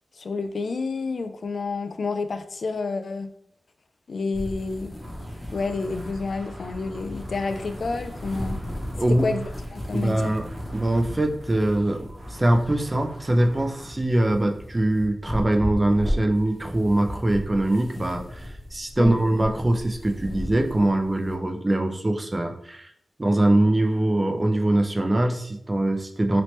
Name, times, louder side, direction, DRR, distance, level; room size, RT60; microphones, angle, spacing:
voice 1, 0.2-3.3 4.1-4.9 5.5-8.6 9.2-9.4 9.7-10.3 19.0-19.2, left 4 dB, 70° left, 9 dB, 0.3 m, -29 dB
sound 1, 4.3-21.3, equal, 10° left, 0.9 m, -36 dB
sound 2, 5.0-13.9, right 1 dB, 65° right, 1.1 m, -47 dB
voice 2, 9.0-9.3 9.9-10.5 10.7-22.9 23.2-26.4, right 1 dB, 25° right, 5 dB, 0.5 m, -23 dB
2.9 x 2.9 x 3.1 m, 0.69 s
cardioid pair, 65°, 0 cm